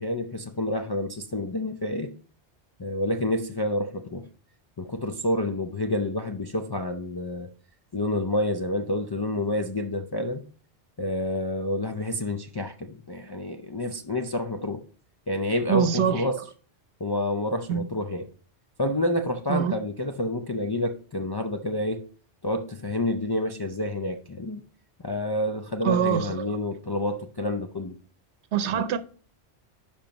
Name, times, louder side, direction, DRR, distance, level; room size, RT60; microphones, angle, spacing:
voice 1, 0.0-2.1 2.8-4.3 4.8-7.5 7.9-10.4 11.0-14.8 15.3-16.4 17.0-18.3 18.8-22.0 22.4-24.6 25.0-28.0 28.7-28.9, left 1 dB, 40° left, 0.3 m, -28 dB
voice 2, 15.7-16.2 17.7-17.9 19.5-19.8 25.8-26.5 28.5-29.0, right 8 dB, 80° right, 1.0 m, -24 dB
10.5 x 5.2 x 2.9 m
omnidirectional pair, 1.1 m